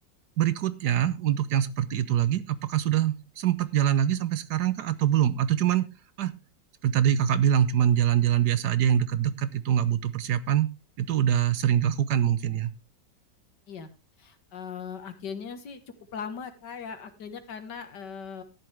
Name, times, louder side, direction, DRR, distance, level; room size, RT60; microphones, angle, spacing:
voice 1, 0.4-5.9 6.2-6.3 6.8-10.7 11.0-12.7, right 10 dB, 70° right, 14 dB, 1.3 m, -24 dB
voice 2, 14.2-15.8 16.1-18.4, left 6 dB, 70° left, 8 dB, 2.1 m, -39 dB
13.0 x 11.0 x 3.4 m, 0.27 s
omnidirectional pair, 1.9 m